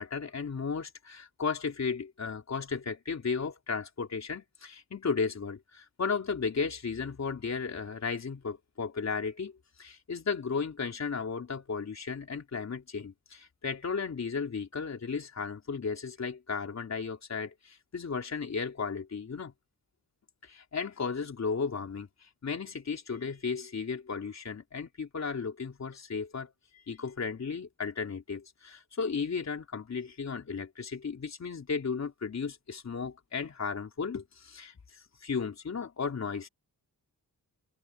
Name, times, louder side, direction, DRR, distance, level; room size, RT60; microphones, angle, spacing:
voice 1, 0.0-9.5 9.8-19.5 20.4-36.5, left 5 dB, 45° left, 3.7 m, -35 dB
wide cardioid pair, 125°, 36 cm